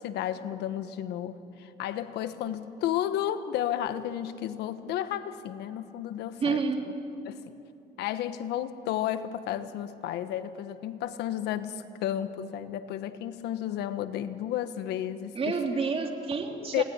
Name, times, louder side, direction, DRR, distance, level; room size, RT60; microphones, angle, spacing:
voice 1, 0.0-6.6 7.2-7.5 8.0-15.6 16.7-16.8, left 11 dB, 85° left, 11 dB, 1.3 m, -32 dB
voice 2, 6.4-6.8 15.4-16.8, right 4 dB, 35° right, 3 dB, 3.5 m, -29 dB
28.5 x 19.5 x 9.8 m, 2.7 s
cardioid pair, 110°, 17 cm